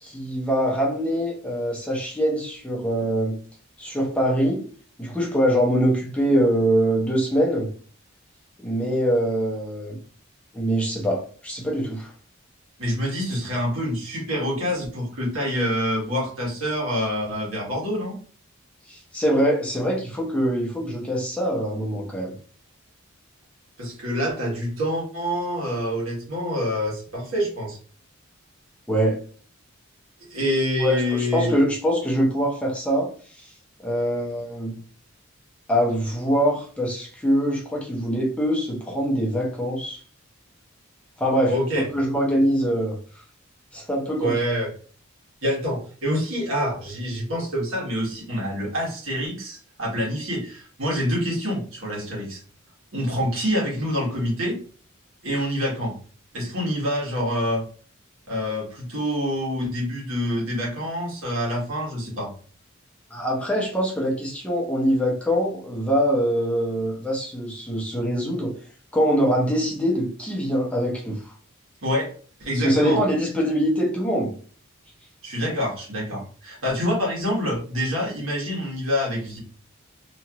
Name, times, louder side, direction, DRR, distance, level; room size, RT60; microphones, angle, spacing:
voice 1, 0.0-3.4 3.8-4.7 5.0-7.7 8.6-10.0 10.5-12.1 18.9-22.3 28.9-29.2 30.8-33.5 33.8-34.8 35.7-40.0 41.2-41.5 41.9-43.0 43.7-44.3 63.1-68.5 68.9-71.3 72.6-74.3, equal, 5° left, -3 dB, 0.6 m, -23 dB
voice 2, 12.8-18.2 23.8-27.8 30.3-31.6 41.5-41.9 44.2-44.7 45.4-52.4 52.9-54.6 55.2-55.9 56.3-57.6 58.3-62.3 71.8-72.1 72.4-73.0 75.2-79.4, equal, 80° right, -4 dB, 1.5 m, -26 dB
3.0 x 2.4 x 2.9 m, 0.42 s
head